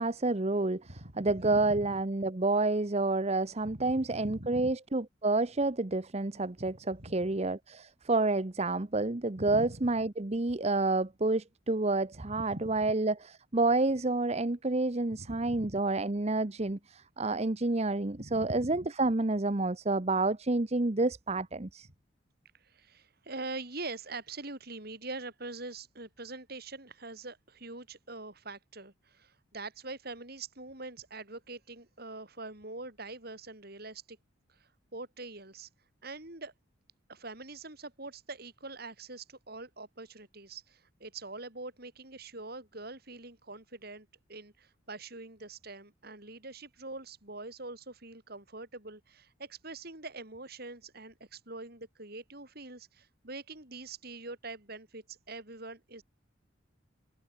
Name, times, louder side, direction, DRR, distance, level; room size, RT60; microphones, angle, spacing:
voice 1, 0.0-21.9, right 2 dB, 35° right, 0.9 m, -29 dB
voice 2, 0.9-1.7 3.6-4.7 7.0-7.3 9.4-9.8 12.2-12.9 15.1-15.8 18.1-18.9 22.5-34.2 34.5-35.7 36.0-36.5 37.1-56.0, right 2 dB, 50° right, 5.4 m, -44 dB
head